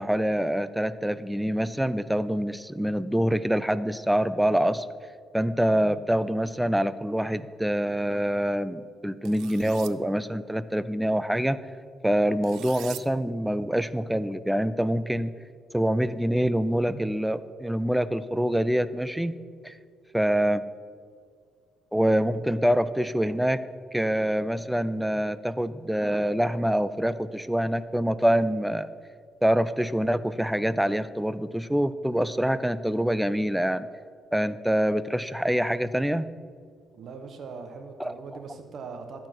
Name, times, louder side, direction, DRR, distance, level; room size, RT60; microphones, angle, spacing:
voice 1, 0.0-4.9 5.3-11.6 12.0-15.3 15.7-19.4 19.6-19.7 20.1-20.6 21.9-23.6 23.9-28.9 29.4-33.9 34.3-36.3 38.0-38.1, equal, 5° right, 15 dB, 0.3 m, -25 dB
sound 1, 9.2-9.9 12.4-13.0, right 13 dB, 85° right, 0.3 m, -42 dB
voice 2, 36.9-39.3, right 4 dB, 60° right, 5 dB, 1.1 m, -40 dB
12.0 x 4.5 x 5.9 m, 2.1 s
cardioid pair, 90°, 0 cm